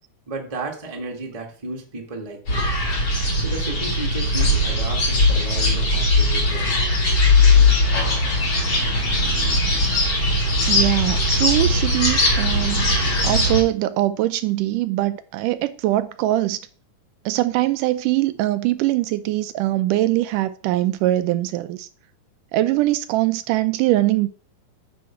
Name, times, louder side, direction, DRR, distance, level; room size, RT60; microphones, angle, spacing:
voice 1, 0.3-2.7 3.4-6.7, right 3 dB, 15° right, 1.1 m, -33 dB
sound 1, 2.5-13.6, left 2 dB, 45° left, 4.5 m, -19 dB
voice 2, 10.7-16.6 17.3-21.9 22.5-24.3, right 15 dB, 80° right, 2.0 m, -22 dB
9.4 x 7.1 x 4.5 m
omnidirectional pair, 3.8 m